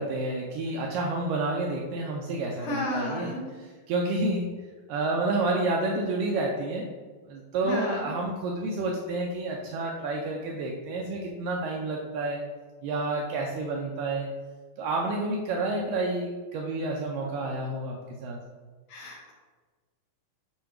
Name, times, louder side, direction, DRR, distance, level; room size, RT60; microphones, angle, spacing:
voice 1, 0.0-3.3 3.6-4.4 4.9-6.9 7.3-12.4 12.8-14.3 14.8-18.0 18.2-18.4, right 2 dB, 80° right, -1 dB, 2.0 m, -29 dB
voice 2, 2.6-3.4 7.6-8.1 18.9-19.3, left 1 dB, 70° left, -1 dB, 2.2 m, -32 dB
7.2 x 2.6 x 5.7 m, 1.4 s
omnidirectional pair, 4.4 m